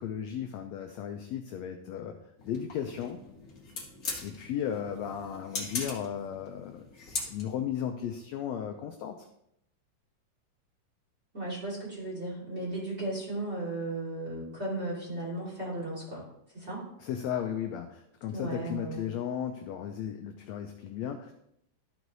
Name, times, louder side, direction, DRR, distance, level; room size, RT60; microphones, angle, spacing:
voice 1, 0.0-2.2 2.5-3.2 4.2-6.8 7.3-9.3 17.0-21.3, left 9 dB, 80° left, 5 dB, 1.5 m, -35 dB
sound 1, 2.4-7.7, left 3 dB, 40° left, 1.4 m, -40 dB
voice 2, 11.3-16.2 16.5-16.9 18.3-19.0, right 2 dB, 20° right, -6 dB, 3.1 m, -35 dB
13.0 x 4.7 x 4.0 m, 0.76 s
omnidirectional pair, 3.7 m